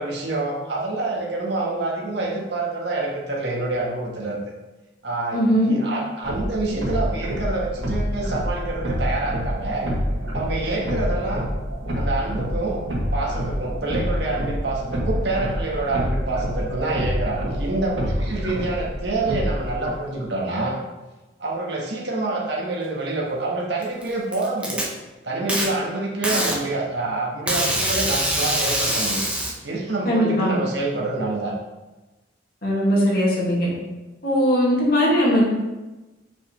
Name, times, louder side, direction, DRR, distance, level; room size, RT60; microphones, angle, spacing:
voice 1, 0.0-4.4 5.0-9.9 10.3-11.5 11.9-12.8 13.1-20.8 21.4-24.8 25.2-29.2 29.6-31.5, right 2 dB, 65° right, -3 dB, 1.6 m, -27 dB
voice 2, 5.3-5.7 30.0-30.5 32.6-33.7 34.2-35.4, equal, 50° left, -5 dB, 2.3 m, -19 dB
sound 1, 6.2-19.9, equal, 80° right, 1.7 m, -27 dB
Packing tape duct tape, 23.8-24.8 25.5-25.7 26.2-26.6 27.5-29.5, right 1 dB, 5° right, 1.1 m, -23 dB
7.4 x 6.2 x 3.3 m, 1.1 s
head